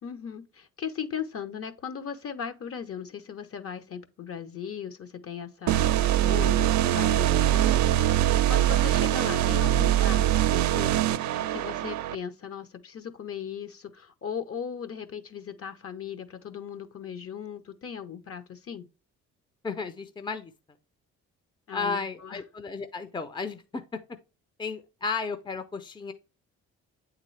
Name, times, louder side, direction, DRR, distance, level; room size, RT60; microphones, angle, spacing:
voice 1, 0.0-18.9 21.7-22.4, left 7 dB, 50° left, 0.9 m, -38 dB
sound 1, 5.7-12.1, right 12 dB, 70° right, 0.5 m, -23 dB
voice 2, 19.6-20.5 21.7-24.0 24.6-26.1, left 4 dB, 15° left, 0.6 m, -33 dB
8.3 x 3.7 x 3.2 m
cardioid pair, 90°, 30 cm